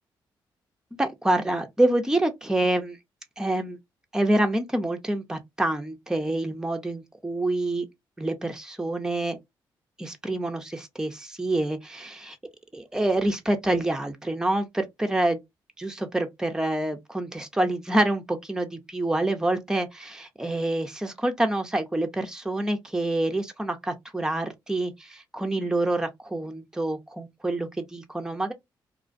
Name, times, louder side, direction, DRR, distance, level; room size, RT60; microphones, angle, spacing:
voice 1, 1.0-3.0 3.4-3.8 4.1-7.9 8.2-9.4 10.0-12.4 12.7-15.4 15.8-28.5, right 1 dB, 5° right, 0.6 m, -27 dB
2.2 x 2.1 x 2.5 m
hypercardioid pair, 40°, 10 cm